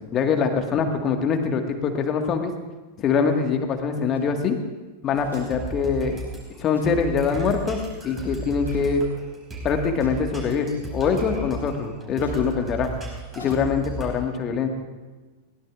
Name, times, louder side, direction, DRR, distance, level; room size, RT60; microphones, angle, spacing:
voice 1, 0.1-2.5 3.0-4.6 5.0-6.2 6.6-7.8 8.0-9.0 9.6-12.9 13.3-14.7, left 6 dB, 30° left, 5 dB, 1.7 m, -23 dB
sound 1, 4.1-4.3 5.2-5.5 5.8-5.9 6.6-7.1 8.6-9.0 9.9-10.2 11.0-11.4 12.1-12.5 13.4-13.6, left 5 dB, 75° left, 2.9 m, -44 dB
sound 2, 5.1-14.2, right 3 dB, 20° right, 4.8 m, -35 dB
21.5 x 17.5 x 2.5 m, 1.2 s
figure-of-eight pair, 90°, 0 cm